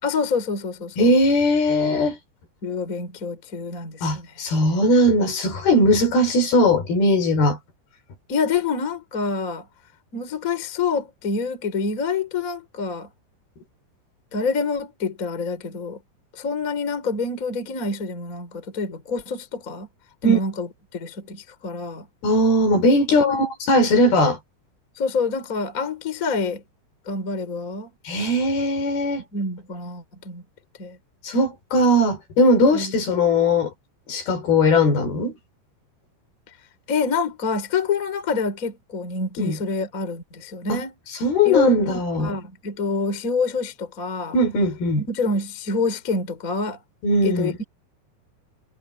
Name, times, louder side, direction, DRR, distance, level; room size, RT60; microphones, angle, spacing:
voice 1, 0.0-1.1 2.6-4.3 4.7-4.8 8.3-9.7 10.1-13.1 14.3-16.0 16.3-19.9 20.2-22.1 23.1-23.5 25.0-26.6 27.1-27.9 29.3-30.4 30.8-31.0 32.7-33.0 36.9-40.9 41.4-44.3 45.0-46.8 47.2-47.6, left 4 dB, 20° left, 3.0 m, -27 dB
voice 2, 1.0-2.2 4.0-7.6 20.2-20.4 22.2-24.4 28.1-29.2 31.2-33.7 34.1-35.3 39.4-39.6 40.7-40.8 41.2-42.3 44.3-45.0 47.0-47.5, left 1 dB, 60° left, 6.7 m, -19 dB
omnidirectional pair, 5.1 m